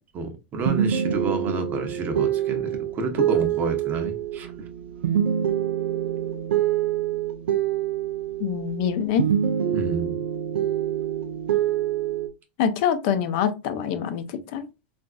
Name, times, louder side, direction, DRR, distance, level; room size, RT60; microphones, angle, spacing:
voice 1, 0.1-4.5 9.7-10.1, right 3 dB, 30° right, 0.7 m, -29 dB
sound 1, 0.6-8.9 9.2-12.3, right 10 dB, 90° right, 0.5 m, -25 dB
voice 2, 8.4-9.3 12.6-14.7, left 8 dB, 55° left, 0.6 m, -25 dB
3.8 x 2.5 x 2.3 m
supercardioid pair, 130°, 6 cm